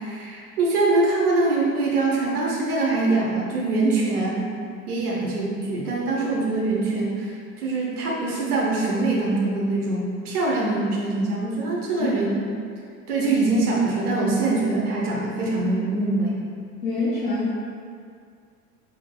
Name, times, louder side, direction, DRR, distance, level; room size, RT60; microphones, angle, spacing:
voice 1, 0.0-4.4 4.9-7.3 7.6-12.4 13.1-16.4, right 2 dB, 70° right, -3 dB, 1.1 m, -23 dB
voice 2, 16.8-17.5, left 3 dB, 60° left, -8 dB, 0.9 m, -25 dB
5.3 x 3.7 x 2.4 m, 2.3 s
figure-of-eight pair, 75°, 46 cm